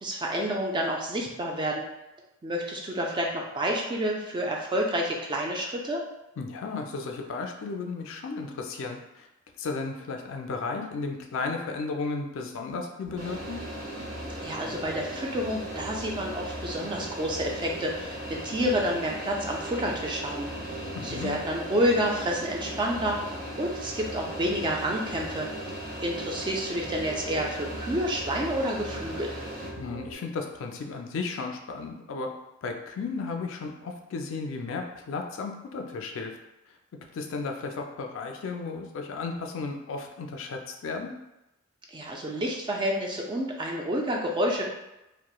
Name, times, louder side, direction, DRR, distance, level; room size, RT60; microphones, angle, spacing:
voice 1, 0.0-1.8 2.4-6.0 14.4-23.2 23.6-25.5 26.0-29.3 41.9-44.7, equal, 20° right, 0 dB, 0.3 m, -29 dB
voice 2, 6.4-9.3 9.6-13.6 20.9-21.3 29.8-32.3 32.6-36.4 37.1-41.1, left 4 dB, 65° left, 3 dB, 0.3 m, -34 dB
sound 1, 13.0-30.1, right 1 dB, ahead, 0.9 m, -41 dB
sound 2, 13.2-29.7, equal, 80° right, 1.3 m, -40 dB
2.9 x 2.1 x 2.3 m, 0.94 s
head